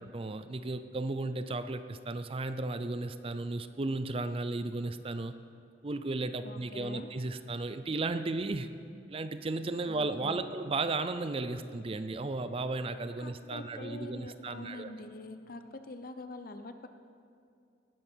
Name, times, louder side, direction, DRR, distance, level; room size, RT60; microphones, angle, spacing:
voice 1, 0.0-5.3 5.8-8.7 9.1-14.9, right 2 dB, 35° right, 11 dB, 0.5 m, -34 dB
voice 2, 6.4-7.1 9.9-10.6 13.2-16.9, left 2 dB, 55° left, 8 dB, 0.8 m, -45 dB
18.0 x 12.0 x 4.5 m, 2.4 s
head